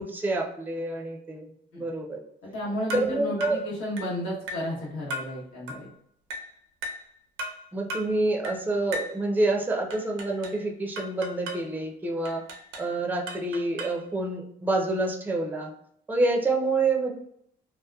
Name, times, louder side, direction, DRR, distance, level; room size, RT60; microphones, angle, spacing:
voice 1, 0.0-2.2 2.9-3.6 7.7-12.4 12.8-15.7 16.1-17.1, right 2 dB, 10° right, 1 dB, 0.5 m, -27 dB
voice 2, 2.4-5.9, equal, 85° left, -6 dB, 1.1 m, -33 dB
sound 1, 2.9-3.1 3.4-3.6 4.0-4.2 4.5-4.7 5.1-5.3 5.7-5.9 6.3-6.5 6.8-7.1 7.4-7.6 7.9-8.1 8.4-8.6 8.9-9.2 9.9-10.6 11.0-11.7 12.3-12.9 13.3-14.0, equal, 90° right, 0.5 m, -36 dB
2.8 x 2.1 x 2.3 m, 0.70 s
cardioid pair, 90°, 20 cm